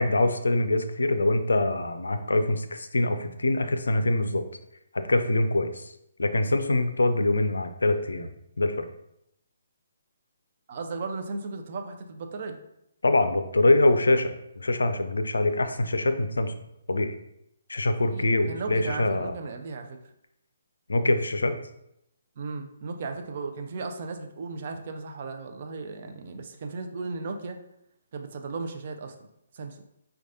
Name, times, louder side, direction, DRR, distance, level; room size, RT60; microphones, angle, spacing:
voice 1, 0.0-4.4 4.9-5.9 6.2-8.9 13.0-16.5 16.9-17.1 17.7-19.3 20.9-21.6, left 2 dB, 75° left, 8 dB, 0.3 m, -24 dB
voice 2, 10.7-12.6 18.1-20.0 22.4-27.6 28.1-29.1 29.5-29.8, right 4 dB, 45° right, 5 dB, 0.4 m, -36 dB
4.6 x 2.3 x 2.6 m, 0.79 s
figure-of-eight pair, 135°, 0 cm